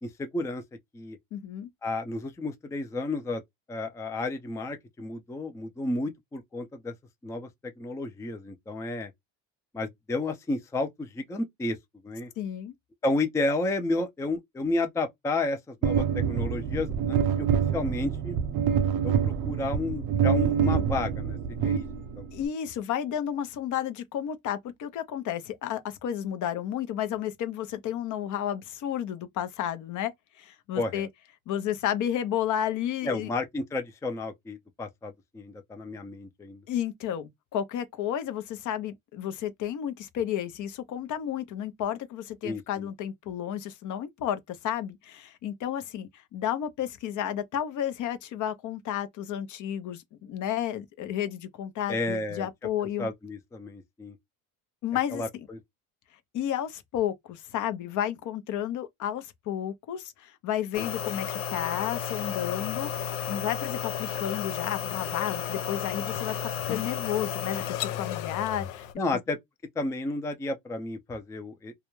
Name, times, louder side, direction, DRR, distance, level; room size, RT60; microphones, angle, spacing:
voice 1, 0.0-0.6 0.9-1.2 1.8-3.4 3.7-6.9 7.2-9.1 9.7-11.8 12.0-12.3 13.0-17.5 17.7-18.4 19.0-21.9 22.2-22.3 30.8-31.1 33.0-36.6 42.4-42.9 51.9-52.5 53.0-54.2 55.1-55.6 60.8-60.9 69.0-69.4 69.8-71.7, left 2 dB, 10° left, 0.4 m, -32 dB
voice 2, 1.3-1.7 12.4-12.7 22.3-30.1 30.4-31.1 31.5-33.3 36.7-53.1 54.8-55.2 56.3-68.9, left 10 dB, 55° left, 0.6 m, -32 dB
sound 1, 15.8-22.4, right 7 dB, 70° right, 0.7 m, -26 dB
sound 2, 60.7-68.9, left 10 dB, 90° left, 0.6 m, -33 dB
2.3 x 2.1 x 3.0 m
supercardioid pair, 105°, 37 cm